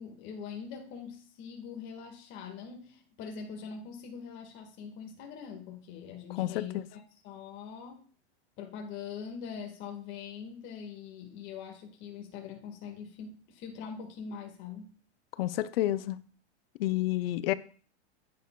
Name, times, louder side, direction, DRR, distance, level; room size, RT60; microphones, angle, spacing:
voice 1, 0.0-8.0 8.6-14.9, left 6 dB, 35° left, 1.7 m, -43 dB
voice 2, 6.4-6.8 15.4-16.2 16.8-17.5, left 15 dB, 60° left, 0.6 m, -29 dB
10.0 x 9.1 x 2.3 m
supercardioid pair, 155°, 33 cm